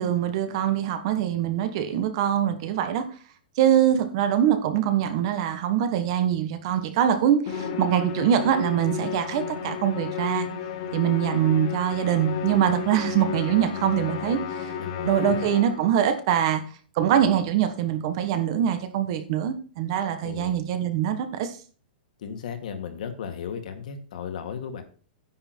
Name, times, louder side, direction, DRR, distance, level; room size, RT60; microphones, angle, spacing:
voice 1, 0.0-3.0 3.6-10.5 10.9-14.7 15.0-16.6 16.9-21.5, right 10 dB, 30° right, 9 dB, 1.3 m, -23 dB
Musical instrument, 7.5-16.0, left 8 dB, 35° left, 2.2 m, -33 dB
voice 2, 14.8-15.5 20.2-20.6 22.2-24.8, left 7 dB, 50° left, 7 dB, 2.2 m, -35 dB
10.0 x 9.6 x 4.5 m, 0.40 s
hypercardioid pair, 180°, 5 cm